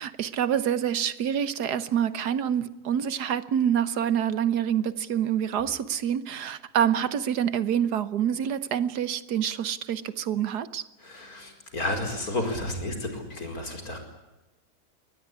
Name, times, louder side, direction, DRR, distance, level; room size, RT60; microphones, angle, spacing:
voice 1, 0.0-10.8, right 9 dB, 90° right, 1.6 m, -26 dB
voice 2, 11.0-14.0, left 1 dB, 65° left, 5.3 m, -32 dB
23.0 x 19.0 x 10.0 m
omnidirectional pair, 1.7 m